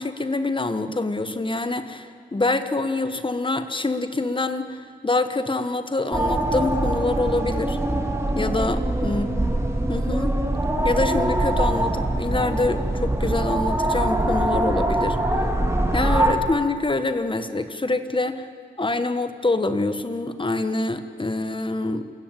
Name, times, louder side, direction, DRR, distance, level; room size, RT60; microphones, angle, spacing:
voice 1, 0.0-7.8 8.3-9.3 9.9-10.4 10.8-15.2 15.9-18.5 18.8-22.1, left 2 dB, 25° left, 10 dB, 1.2 m, -25 dB
sound 1, 6.1-16.3, right 1 dB, 15° right, 2.4 m, -23 dB
27.5 x 14.5 x 9.0 m, 2.2 s
wide cardioid pair, 125°, 19 cm